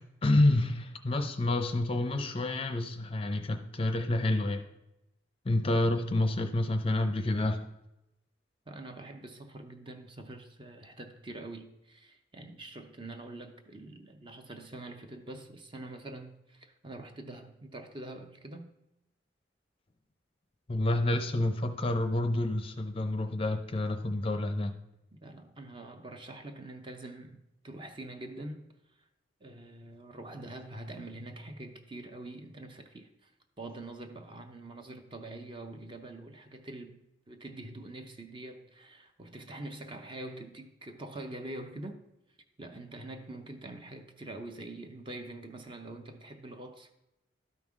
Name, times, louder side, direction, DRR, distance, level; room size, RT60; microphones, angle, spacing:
voice 1, 0.2-4.6 5.5-7.6 20.7-24.7, left 2 dB, 30° left, 0.5 m, -28 dB
voice 2, 8.7-18.7 25.2-28.7 29.4-33.3 33.6-42.0 42.6-46.9, right 2 dB, 25° right, 0.7 m, -45 dB
12.5 x 5.4 x 3.6 m
head